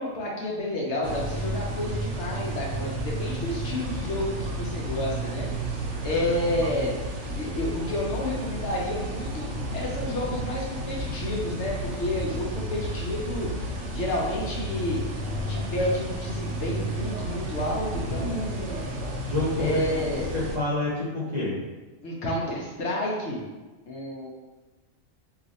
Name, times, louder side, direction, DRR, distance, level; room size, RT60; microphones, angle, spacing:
voice 1, 0.0-6.9 7.4-15.0 15.5-18.9 19.6-20.3 22.0-23.4 23.8-24.3, left 1 dB, 65° left, -2 dB, 0.8 m, -30 dB
sound 1, 1.0-20.6, right 1 dB, 70° right, 0.9 m, -32 dB
voice 2, 17.9-18.4 19.2-19.8 20.3-21.6, left 2 dB, 40° right, -7 dB, 0.7 m, -28 dB
2.4 x 2.4 x 3.9 m, 1.2 s
omnidirectional pair, 1.4 m